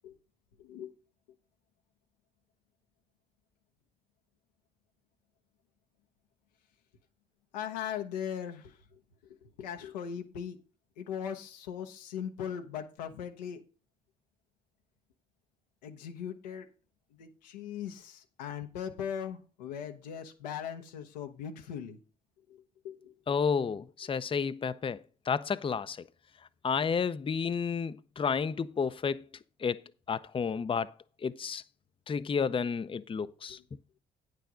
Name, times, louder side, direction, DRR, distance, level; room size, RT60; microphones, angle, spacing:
voice 1, 0.6-0.9 7.5-10.6 11.0-13.6 15.8-16.7 17.1-22.0 22.5-23.2 33.5-33.6, left 8 dB, 90° left, 0.9 m, -39 dB
voice 2, 23.3-26.0 26.6-29.3 29.6-29.8 30.1-30.9 31.2-31.6 32.1-33.6, left 6 dB, 25° left, 0.5 m, -31 dB
9.2 x 6.6 x 5.0 m
hypercardioid pair, 50°, 21 cm